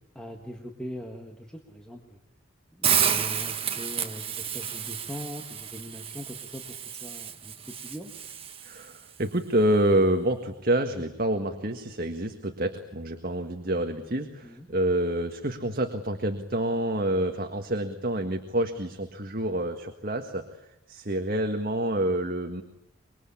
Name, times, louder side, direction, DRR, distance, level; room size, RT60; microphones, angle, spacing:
voice 1, 0.2-2.2 2.7-8.1 14.4-14.7, equal, 5° left, 2 dB, 1.8 m, -41 dB
Hiss, 2.8-8.9, right 8 dB, 25° right, 1.6 m, -30 dB
voice 2, 8.6-20.6 20.9-22.6, right 1 dB, 45° right, 5 dB, 1.7 m, -27 dB
25.5 x 23.0 x 8.6 m, 0.87 s
head